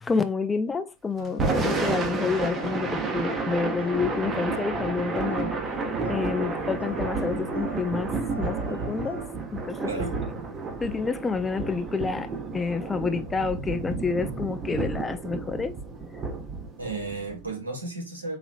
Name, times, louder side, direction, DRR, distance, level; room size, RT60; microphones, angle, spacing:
voice 1, 0.0-5.5 6.1-8.1 8.4-9.2 9.5-9.9 10.8-15.8, left 4 dB, 15° left, 0.3 m, -29 dB
sound 1, 1.2-9.3, left 2 dB, 80° left, 0.9 m, -43 dB
Thunder / Rain, 1.3-17.5, right 3 dB, 25° right, 0.7 m, -31 dB
voice 2, 9.8-10.2 16.8-18.4, right 3 dB, 80° right, 1.3 m, -33 dB
3.9 x 2.9 x 2.4 m
figure-of-eight pair, 90°, 0 cm